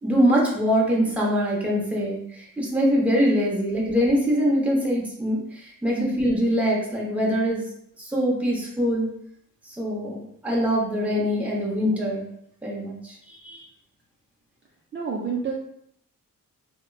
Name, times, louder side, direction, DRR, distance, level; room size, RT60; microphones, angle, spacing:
voice 1, 0.0-7.6 8.0-9.1 9.8-12.3 12.6-13.6, equal, 5° right, -4 dB, 0.7 m, -23 dB
voice 2, 14.9-15.5, right 5 dB, 35° right, -2 dB, 0.4 m, -28 dB
2.8 x 2.1 x 2.2 m, 0.70 s
cardioid pair, 95°, 34 cm